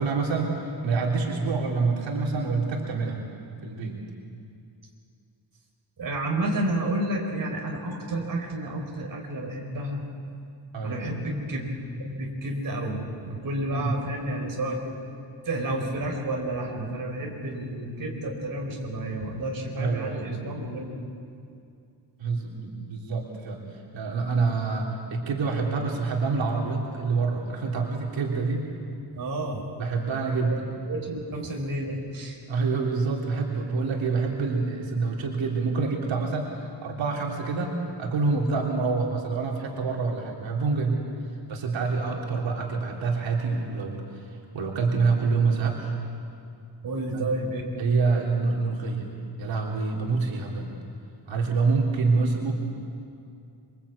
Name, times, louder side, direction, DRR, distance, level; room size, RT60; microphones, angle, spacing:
voice 1, 0.0-3.2 3.6-4.0 10.7-11.0 13.7-13.9 19.8-20.3 22.2-28.7 29.8-30.6 32.5-41.0 41.5-44.3 44.5-45.9 47.1-47.3 47.8-49.1 49.4-50.7 51.3-52.5, right 4 dB, 90° right, -1 dB, 3.4 m, -27 dB
voice 2, 6.0-10.1 10.8-11.7 12.0-15.0 15.4-21.0 29.1-29.6 30.4-30.6 30.9-32.4 46.8-47.8, right 1 dB, 50° right, 1 dB, 4.4 m, -30 dB
27.0 x 23.5 x 8.5 m, 2.5 s
wide cardioid pair, 160°, 44 cm